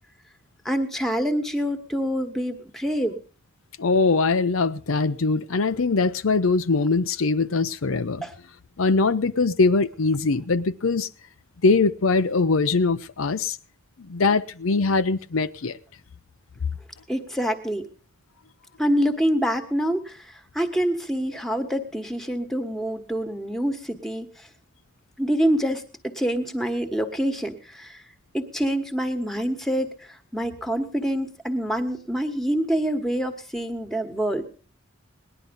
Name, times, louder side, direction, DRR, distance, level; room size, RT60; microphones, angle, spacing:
voice 1, 0.6-3.2 8.2-8.3 17.1-17.9 18.8-24.3 25.2-28.0 28.3-34.4, equal, ahead, 1.4 m, -26 dB
voice 2, 3.8-8.3 8.8-11.1 11.6-13.6 14.0-15.8, left 3 dB, 80° left, 0.7 m, -22 dB
19.5 x 11.0 x 5.4 m
head